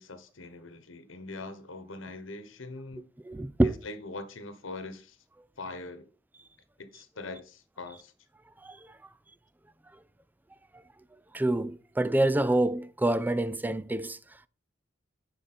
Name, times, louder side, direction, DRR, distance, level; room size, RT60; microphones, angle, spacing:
voice 1, 0.0-3.1 3.6-5.2 5.6-6.1 6.8-8.1, left 2 dB, 85° left, 1.2 m, -42 dB
voice 2, 3.2-3.8 8.6-8.9 11.3-14.2, right 1 dB, 10° right, 0.4 m, -27 dB
10.0 x 5.0 x 4.3 m
head